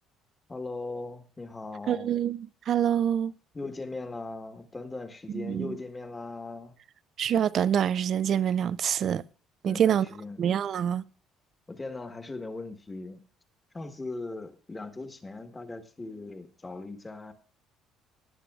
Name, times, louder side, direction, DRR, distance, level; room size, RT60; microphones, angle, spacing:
voice 1, 0.5-2.1 3.5-6.7 9.6-10.4 11.7-13.3 13.7-17.3, left 3 dB, 20° left, 1.3 m, -39 dB
voice 2, 1.9-3.3 5.3-5.8 7.2-9.2 9.6-10.1 10.4-11.0, right 9 dB, 55° right, 0.4 m, -26 dB
17.0 x 10.0 x 2.4 m
cardioid pair, 95°, 0 cm